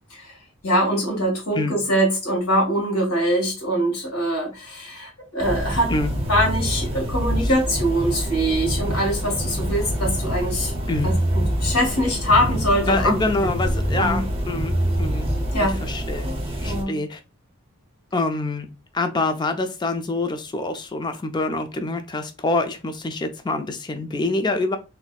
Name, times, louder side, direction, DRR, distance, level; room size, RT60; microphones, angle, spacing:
voice 1, 0.6-5.9 6.3-10.7 11.0-13.1 13.4-13.5 14.0-14.2 15.5-15.8 16.6-17.0, equal, 90° left, 1.7 m, -23 dB
sound 1, 5.4-16.8, equal, 25° right, 0.7 m, -25 dB
voice 2, 10.9-11.2 12.9-15.3 15.6-17.2 18.1-18.7 18.9-24.8, left 2 dB, 20° left, 0.3 m, -26 dB
3.9 x 2.7 x 2.3 m
head